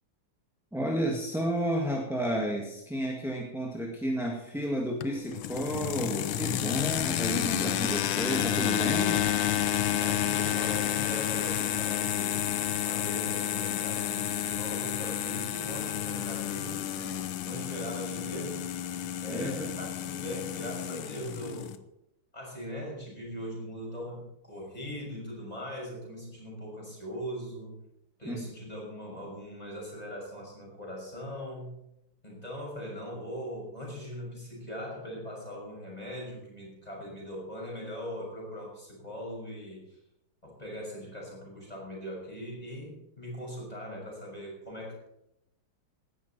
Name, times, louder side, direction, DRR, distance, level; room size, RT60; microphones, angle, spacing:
voice 1, 0.7-9.2 19.3-19.7 28.2-28.5, right 1 dB, ahead, 0 dB, 1.7 m, -32 dB
sound 1, 5.0-21.8, left 11 dB, 75° left, 1.6 m, -30 dB
voice 2, 10.0-16.8 17.4-18.6 19.2-21.8 22.3-27.8 28.2-31.7 32.2-40.0 40.4-45.1, equal, 15° left, -2 dB, 6.5 m, -40 dB
17.0 x 12.5 x 4.4 m, 0.82 s
omnidirectional pair, 2.4 m